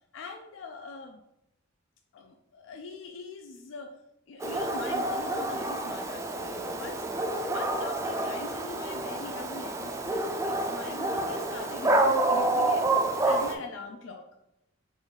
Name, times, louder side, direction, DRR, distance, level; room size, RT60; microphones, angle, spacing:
voice 1, 0.1-1.2 2.1-3.9 4.3-7.0 7.5-14.3, left 4 dB, 65° left, 4 dB, 0.4 m, -42 dB
Dog, 4.4-13.5, right 2 dB, 15° right, 0.3 m, -28 dB
3.7 x 3.0 x 3.9 m, 0.85 s
head